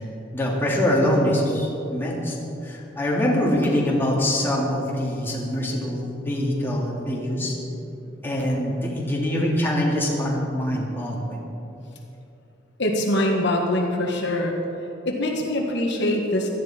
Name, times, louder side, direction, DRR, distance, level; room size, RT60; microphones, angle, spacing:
voice 1, 0.3-2.4 2.6-7.6 8.2-11.4, left 1 dB, 10° left, -4 dB, 2.6 m, -24 dB
voice 2, 12.8-14.6 15.0-16.5, left 1 dB, 65° left, 1 dB, 1.6 m, -23 dB
17.0 x 13.0 x 4.4 m, 2.9 s
head